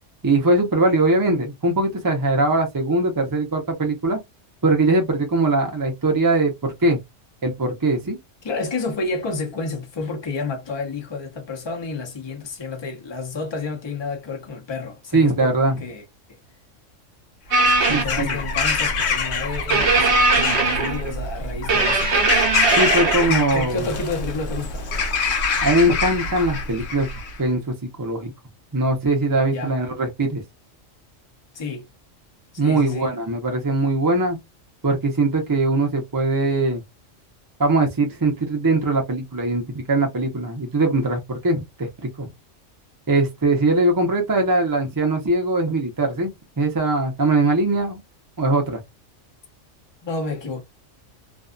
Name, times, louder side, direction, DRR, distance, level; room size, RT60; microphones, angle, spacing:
voice 1, 0.2-4.2 4.6-7.0 7.4-8.2 15.1-15.8 17.9-18.4 22.8-23.9 25.6-27.1 27.4-28.3 28.7-30.4 32.6-34.4 34.8-36.8 37.6-41.9 42.2-42.3 43.1-48.0 48.4-48.8, right 2 dB, 30° right, 0.4 m, -21 dB
voice 2, 8.4-15.5 15.8-16.4 17.6-22.1 23.3-24.9 29.5-29.8 31.5-31.9 32.5-33.1 50.0-50.6, left 3 dB, 30° left, 0.6 m, -30 dB
Bird vocalization bird call bird song / Crow, 17.5-27.4, left 5 dB, 65° left, 1.0 m, -25 dB
sound 1, 17.5-18.1 19.7-21.2 21.7-23.3, right 3 dB, 65° right, 1.0 m, -19 dB
2.6 x 2.2 x 2.5 m
omnidirectional pair, 1.3 m